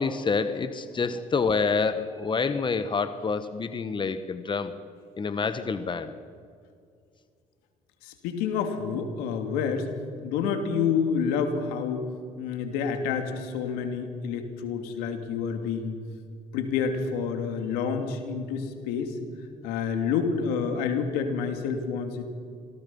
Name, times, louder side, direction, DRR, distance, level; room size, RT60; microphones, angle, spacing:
voice 1, 0.0-4.7 5.2-6.1, left 4 dB, 30° left, 11 dB, 1.5 m, -27 dB
voice 2, 8.0-9.9 10.2-12.1 12.4-15.9 16.5-19.2 19.6-22.2, left 6 dB, 85° left, 6 dB, 2.7 m, -28 dB
27.0 x 20.0 x 5.7 m, 2.2 s
supercardioid pair, 70°, 15 cm